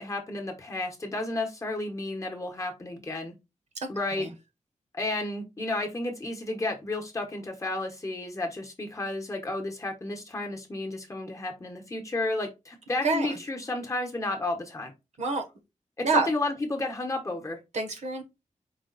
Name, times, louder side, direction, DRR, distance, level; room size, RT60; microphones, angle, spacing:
voice 1, 0.0-3.3 3.9-4.3 4.9-14.9 16.0-17.6, left 2 dB, 25° left, 1.0 m, -32 dB
voice 2, 3.8-4.3 13.0-13.4 15.2-15.4 16.0-16.3 17.7-18.2, right 3 dB, 60° right, 1.0 m, -27 dB
4.9 x 2.3 x 3.9 m
wide cardioid pair, 175°, 13 cm